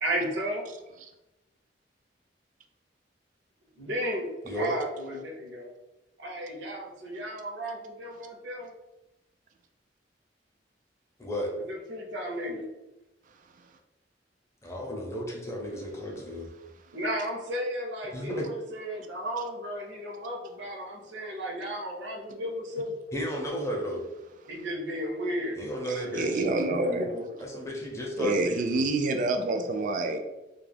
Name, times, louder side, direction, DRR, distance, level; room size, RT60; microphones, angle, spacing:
voice 1, 0.0-0.6 3.8-5.7 6.2-8.7 11.6-12.6 16.9-23.0 24.5-25.6 26.0-27.3, equal, 85° right, -1 dB, 0.6 m, -34 dB
voice 2, 11.2-11.6 14.6-16.5 18.1-18.5 23.1-24.0 25.6-26.4 27.4-28.9, equal, 15° left, -2 dB, 0.5 m, -33 dB
voice 3, 25.9-27.1 28.2-30.2, right 2 dB, 45° right, 5 dB, 0.3 m, -27 dB
2.3 x 2.1 x 3.2 m, 0.99 s
head